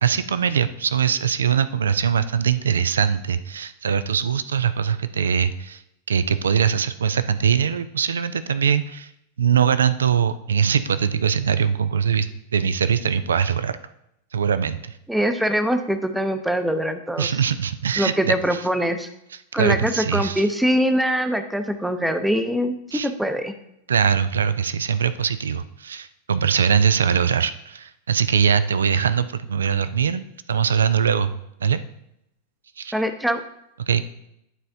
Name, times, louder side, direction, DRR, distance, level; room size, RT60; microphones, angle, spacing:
voice 1, 0.0-5.8 6.1-9.1 9.4-12.3 12.5-13.8 14.3-14.9 17.2-18.6 19.6-20.4 22.9-23.1 23.9-31.3 31.6-31.8 32.8-32.9 33.9-34.0, right 7 dB, 70° right, 14 dB, 0.4 m, -22 dB
voice 2, 15.1-17.4 18.0-19.1 19.5-23.5 32.9-33.4, equal, 5° right, 8 dB, 0.6 m, -23 dB
11.0 x 4.2 x 2.7 m, 0.79 s
figure-of-eight pair, 90°, 0 cm